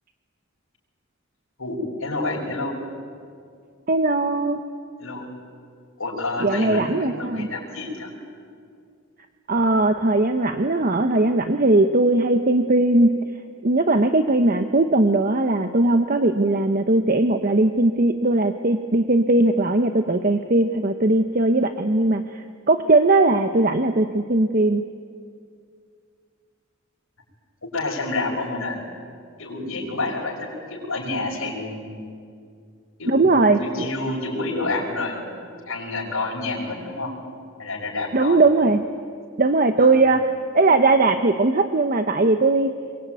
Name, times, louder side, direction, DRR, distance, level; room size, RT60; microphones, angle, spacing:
voice 1, 1.6-2.8 5.0-5.3 6.0-8.1 27.7-28.9 29.4-32.0 33.0-35.4 35.7-37.1 37.6-38.4 39.8-39.9, left 2 dB, 80° left, -3 dB, 6.0 m, -29 dB
voice 2, 3.9-4.6 6.4-7.5 9.5-13.2 13.6-24.8 33.0-33.9 38.1-38.8 39.4-40.3 40.5-42.7, right 2 dB, 45° right, 7 dB, 0.9 m, -19 dB
25.5 x 23.0 x 9.3 m, 2.3 s
head